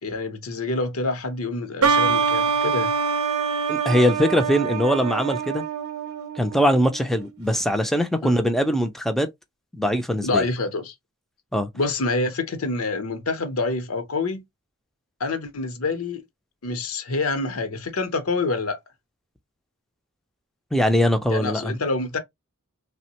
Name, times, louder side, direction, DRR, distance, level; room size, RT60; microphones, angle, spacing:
voice 1, 0.0-2.9 8.2-8.4 10.2-10.9 11.7-14.4 15.2-16.2 16.6-18.8 21.3-22.2, left 3 dB, 80° left, 0.7 m, -27 dB
sound 1, 1.8-7.3, right 6 dB, 85° right, 0.5 m, -25 dB
voice 2, 3.7-5.6 6.4-9.3 9.7-10.4 11.5-11.7 20.7-21.7, equal, ahead, 0.4 m, -21 dB
3.3 x 2.1 x 2.8 m
head